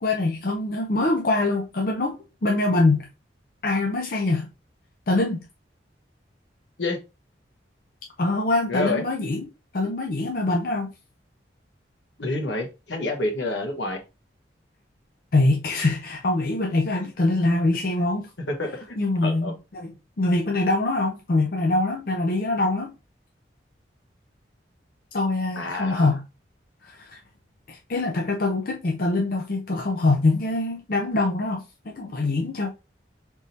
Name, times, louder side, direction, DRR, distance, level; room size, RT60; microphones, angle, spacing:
voice 1, 0.0-3.1 3.6-4.5 5.1-5.4 8.2-9.5 9.7-10.9 15.3-18.3 19.0-22.9 25.1-26.2 26.8-27.2 27.7-32.7, left 2 dB, 50° left, 0.5 m, -24 dB
voice 2, 8.7-9.0 12.2-14.0 18.5-18.9 19.2-19.5 25.6-26.1, left 2 dB, 75° left, 1.1 m, -28 dB
3.6 x 2.6 x 4.3 m
head